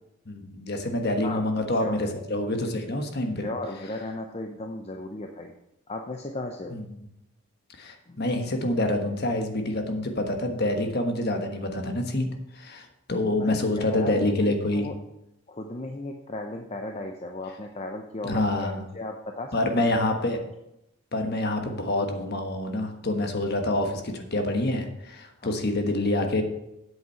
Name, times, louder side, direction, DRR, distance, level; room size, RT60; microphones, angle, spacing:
voice 1, 0.2-3.5 6.7-7.1 7.8-14.9 18.2-18.8 19.5-20.4 21.1-26.4, left 1 dB, 45° left, 5 dB, 1.3 m, -27 dB
voice 2, 3.4-5.5 5.9-6.8 8.1-8.2 13.3-14.6 14.8-15.0 15.5-19.8 25.4-25.5, left 2 dB, 30° left, 4 dB, 0.6 m, -36 dB
8.2 x 7.8 x 5.7 m, 0.87 s
head